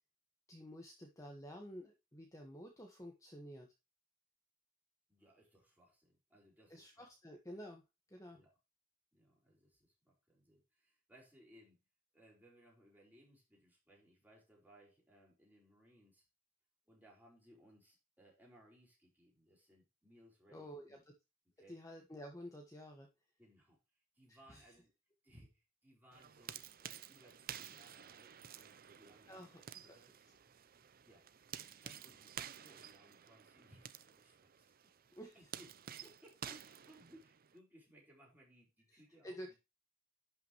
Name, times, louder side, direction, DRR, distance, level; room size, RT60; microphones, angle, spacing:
voice 1, 0.5-3.7 6.7-7.8 8.1-8.4 20.5-21.0 21.7-23.1 24.3-24.6 29.3-29.6 29.9-30.0 35.1-35.5 39.2-39.5, equal, 15° left, 1 dB, 1.4 m, -51 dB
voice 2, 5.1-7.1 8.3-8.5 9.1-11.8 12.1-16.2 16.9-21.0 21.6-21.8 23.4-24.9 25.2-29.5 29.8-30.1 31.0-39.6, equal, 10° right, -2 dB, 4.7 m, -65 dB
sound 1, 26.1-37.6, right 9 dB, 45° right, 0.6 m, -52 dB
11.5 x 5.9 x 3.0 m, 0.25 s
head